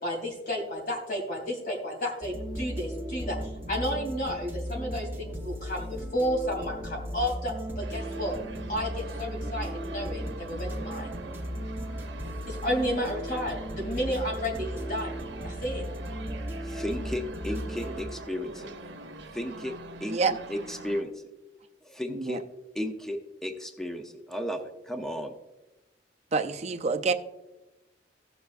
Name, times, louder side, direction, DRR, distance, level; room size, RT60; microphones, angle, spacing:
voice 1, 0.0-3.4 3.7-8.3 8.7-11.1 12.5-15.2 15.4-15.8, equal, 50° left, 3.1 m, -32 dB
sound 1, 2.2-18.0, equal, 15° right, 1.1 m, -36 dB
sound 2, 7.8-21.0, right 2 dB, 80° right, 0.9 m, -44 dB
voice 2, 16.6-18.7 19.3-19.7 20.0-20.2 20.5-21.2 21.8-22.4 22.7-25.4, left 1 dB, 5° left, 0.7 m, -34 dB
voice 3, 26.3-27.1, right 4 dB, 40° right, 0.5 m, -27 dB
16.5 x 7.0 x 2.5 m
head